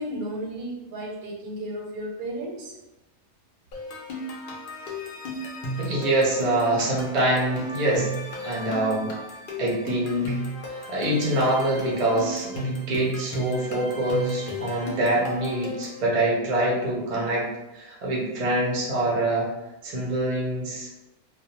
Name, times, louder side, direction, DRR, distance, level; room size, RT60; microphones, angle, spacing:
voice 1, 0.0-2.8, right 1 dB, 85° right, -1 dB, 1.1 m, -33 dB
sound 1, 3.7-16.0, right 1 dB, 75° left, 0.4 m, -34 dB
voice 2, 5.8-8.1 8.4-9.1 9.6-10.4 10.7-17.5 17.7-19.5 19.8-20.9, right 1 dB, 50° right, -3 dB, 0.4 m, -25 dB
2.4 x 2.1 x 2.8 m, 0.97 s
omnidirectional pair, 1.5 m